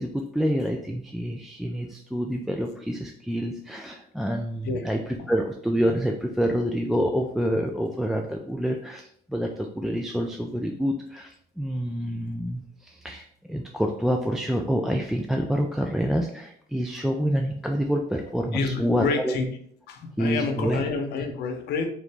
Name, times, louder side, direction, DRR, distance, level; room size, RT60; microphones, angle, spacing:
voice 1, 0.0-19.4 20.2-20.9, equal, ahead, 2 dB, 0.3 m, -27 dB
voice 2, 18.5-19.5 19.9-21.9, left 4 dB, 75° left, 6 dB, 0.7 m, -28 dB
3.7 x 3.0 x 3.3 m, 0.64 s
cardioid pair, 110°, 17 cm